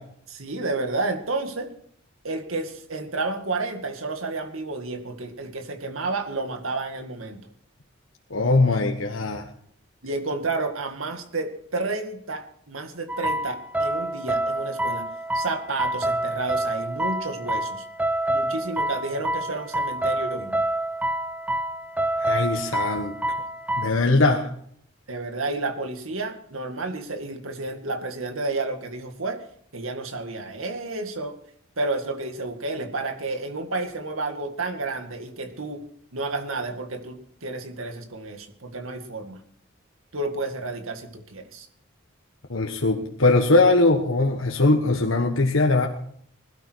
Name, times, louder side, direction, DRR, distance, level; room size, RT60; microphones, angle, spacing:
voice 1, 0.3-1.8 2.2-7.5 10.0-15.1 15.3-17.9 18.3-20.6 25.1-29.4 29.7-31.4 31.8-35.8 36.1-39.4 40.1-41.7, right 3 dB, 90° right, 6 dB, 2.1 m, -31 dB
voice 2, 8.3-9.5 22.2-23.1 23.8-24.5 42.5-45.9, left 2 dB, 80° left, 2 dB, 1.4 m, -21 dB
sound 1, 13.1-23.9, right 1 dB, 5° right, 0.5 m, -27 dB
21.0 x 12.5 x 4.7 m, 0.64 s
head